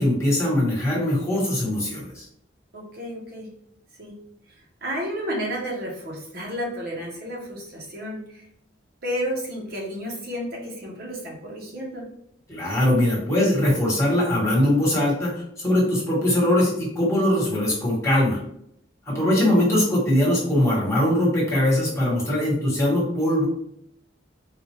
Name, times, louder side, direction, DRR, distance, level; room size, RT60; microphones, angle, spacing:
voice 1, 0.0-2.2 12.5-18.4 19.1-23.5, left 1 dB, 15° left, -6 dB, 1.3 m, -21 dB
voice 2, 2.7-3.5 4.0-4.1 4.8-8.5 9.0-12.1 19.2-19.5, equal, 55° right, -2 dB, 1.0 m, -32 dB
3.9 x 2.5 x 3.1 m, 0.73 s
head